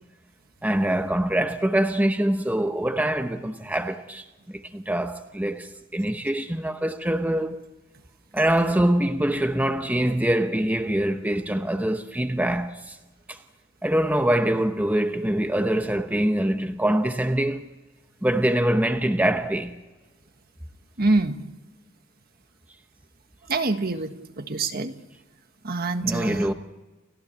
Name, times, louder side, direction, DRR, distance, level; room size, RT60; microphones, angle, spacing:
voice 1, 0.6-7.6 8.3-13.0 13.3-13.4 13.8-17.7 18.2-19.8 26.0-26.5, right 1 dB, 10° right, 0.9 m, -24 dB
voice 2, 21.0-21.4 23.5-24.9 25.6-26.5, right 3 dB, 50° right, 1.6 m, -25 dB
30.0 x 15.0 x 8.6 m
head